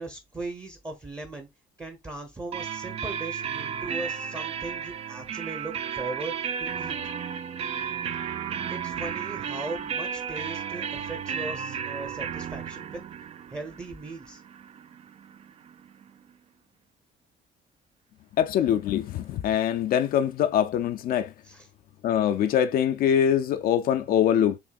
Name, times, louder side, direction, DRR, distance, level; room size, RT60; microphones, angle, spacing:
voice 1, 0.0-1.5 1.8-7.0 8.7-13.0 13.5-14.4 21.4-21.7, right 2 dB, 20° right, 0.8 m, -38 dB
sound 1, 2.5-16.1, right 7 dB, 40° right, 0.4 m, -34 dB
voice 2, 18.4-21.3 22.0-24.6, left 9 dB, 60° left, 0.4 m, -23 dB
6.0 x 3.1 x 2.4 m
cardioid pair, 110°, 17 cm